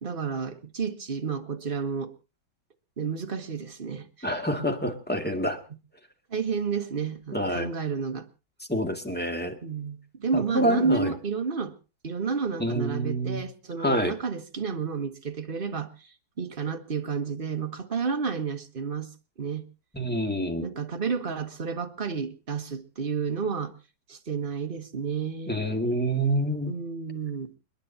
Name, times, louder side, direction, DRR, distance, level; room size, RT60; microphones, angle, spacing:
voice 1, 0.0-2.1 3.0-4.3 4.6-4.7 6.3-8.3 9.6-11.7 12.0-16.1 16.4-19.1 19.4-19.7 20.6-23.7 24.1-25.6 26.7-27.5, right 5 dB, 30° right, 1.2 m, -31 dB
voice 2, 4.2-5.6 7.3-7.7 8.7-9.6 10.3-11.1 12.6-13.4 13.8-14.1 19.9-20.6 25.5-26.7, equal, 5° left, 1.9 m, -27 dB
29.5 x 10.5 x 2.8 m
omnidirectional pair, 2.2 m